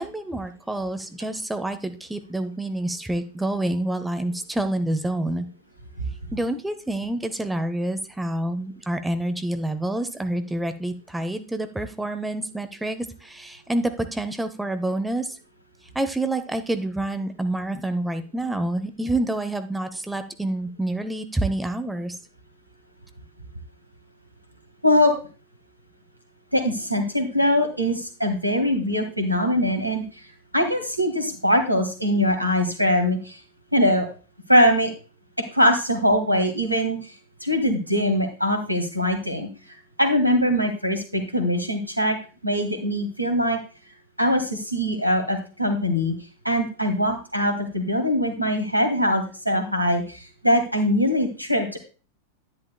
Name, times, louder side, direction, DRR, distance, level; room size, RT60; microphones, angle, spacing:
voice 1, 0.0-5.5 6.3-15.4 15.9-22.2, right 1 dB, 5° right, 8 dB, 0.8 m, -28 dB
voice 2, 26.5-30.0 30.5-33.4 33.7-34.1 34.5-34.9 35.5-37.0 37.4-39.5 40.0-42.2 42.4-43.6 44.2-46.1 46.4-51.8, equal, 90° right, 6 dB, 1.8 m, -22 dB
10.5 x 10.5 x 2.2 m, 0.35 s
figure-of-eight pair, 90°, 0 cm